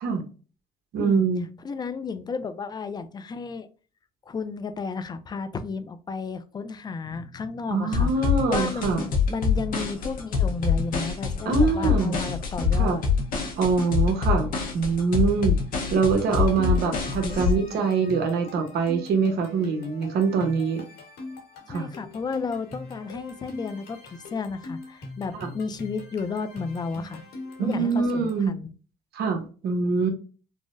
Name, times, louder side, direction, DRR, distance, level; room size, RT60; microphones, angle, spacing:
voice 1, 0.9-1.5 7.7-9.1 11.4-12.2 12.7-13.0 13.6-15.6 15.9-20.8 21.7-21.9 25.3-25.5 27.6-28.5 29.1-30.1, right 5 dB, 70° right, 4 dB, 0.9 m, -24 dB
voice 2, 1.6-3.7 4.3-13.0 21.7-27.2 27.6-28.7, left 4 dB, 25° left, 11 dB, 0.3 m, -33 dB
sound 1, 7.9-17.5, left 6 dB, 55° left, 0.8 m, -25 dB
sound 2, 16.2-28.5, left 3 dB, 75° left, 1.3 m, -42 dB
3.7 x 2.0 x 2.5 m, 0.37 s
cardioid pair, 110°, 17 cm